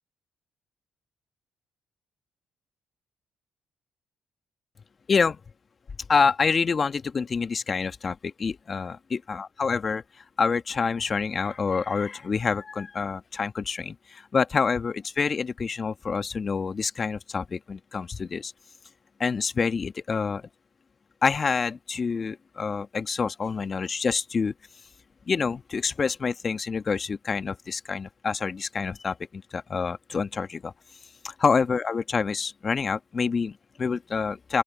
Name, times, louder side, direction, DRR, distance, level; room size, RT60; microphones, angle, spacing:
voice 1, 5.1-5.4 6.1-10.0 10.4-18.5 19.2-20.4 21.2-24.5 25.3-30.7 31.2-34.6, left 5 dB, 45° left, 1.4 m, -27 dB
open air
supercardioid pair, 60°, 0 cm